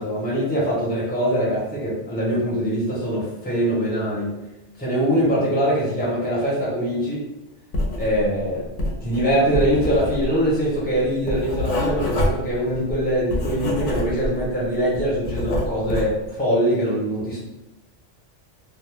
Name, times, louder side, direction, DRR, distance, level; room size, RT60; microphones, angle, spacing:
voice 1, 0.0-4.3 4.8-7.2 8.0-8.7 9.0-17.4, equal, 10° left, -7 dB, 0.9 m, -23 dB
Writing, 7.7-8.4 8.6-14.5 14.8-16.2, left 1 dB, 80° left, 0.9 m, -26 dB
2.3 x 2.1 x 3.3 m, 0.99 s
omnidirectional pair, 1.2 m